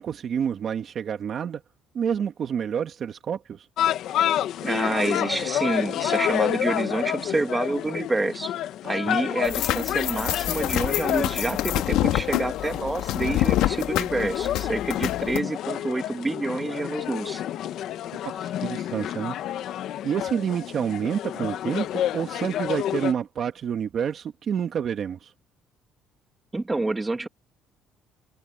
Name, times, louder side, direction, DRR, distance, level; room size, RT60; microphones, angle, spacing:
voice 1, 0.0-1.6 1.9-3.7 9.0-9.2 18.3-19.4 20.0-25.3, right 8 dB, 40° right, 1.7 m, -28 dB
sound 1, 3.8-23.1, left 11 dB, 60° left, 1.3 m, -29 dB
voice 2, 4.6-8.5 8.8-17.4 26.5-27.3, right 2 dB, 15° right, 2.2 m, -28 dB
sound 2, 9.4-15.4, left 14 dB, 80° left, 2.5 m, -27 dB
cardioid pair, 145°, 0 cm